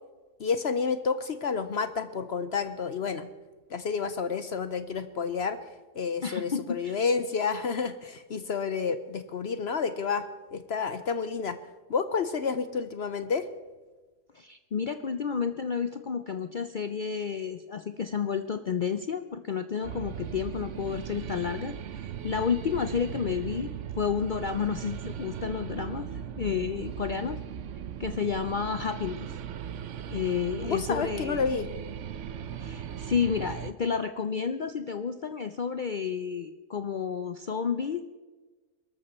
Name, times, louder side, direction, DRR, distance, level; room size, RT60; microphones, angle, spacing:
voice 1, 0.4-3.3 3.7-5.6 6.0-10.3 10.5-11.6 11.9-13.5 30.6-31.7, left 5 dB, 55° left, 11 dB, 0.8 m, -30 dB
voice 2, 6.2-7.0 14.3-26.1 26.4-27.4 28.0-29.4 30.1-31.4 32.6-38.0, left 6 dB, 85° left, 9 dB, 0.4 m, -31 dB
sound 1, 19.8-33.7, right 9 dB, 60° right, 0.9 m, -38 dB
22.0 x 13.0 x 4.3 m, 1.3 s
omnidirectional pair, 1.6 m